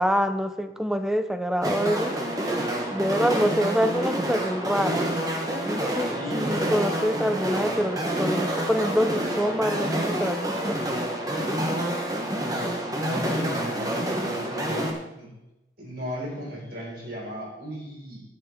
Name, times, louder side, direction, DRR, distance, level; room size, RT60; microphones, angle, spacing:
voice 1, 0.0-2.2 2.9-5.1 5.7-10.8, equal, 5° right, 9 dB, 0.6 m, -26 dB
sound 1, 1.6-14.9, right 1 dB, 20° right, 1.3 m, -28 dB
voice 2, 6.0-6.7 12.4-15.3 15.8-18.2, equal, 55° right, -4 dB, 5.0 m, -36 dB
11.0 x 9.9 x 4.9 m, 0.96 s
head